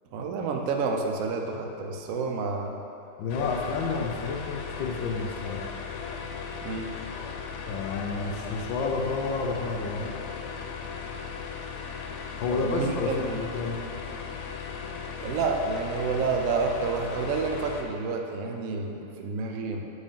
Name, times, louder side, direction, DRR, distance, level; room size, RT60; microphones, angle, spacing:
voice 1, 0.1-2.8 6.6-6.9 12.5-13.4 15.2-19.9, right 4 dB, 85° right, 3 dB, 0.7 m, -29 dB
voice 2, 3.2-5.7 7.7-10.2 12.4-13.8, left 4 dB, 70° left, 0 dB, 1.3 m, -30 dB
sound 1, 3.3-17.8, left 6 dB, 90° left, 1.5 m, -37 dB
8.0 x 6.2 x 3.7 m, 2.8 s
omnidirectional pair, 2.3 m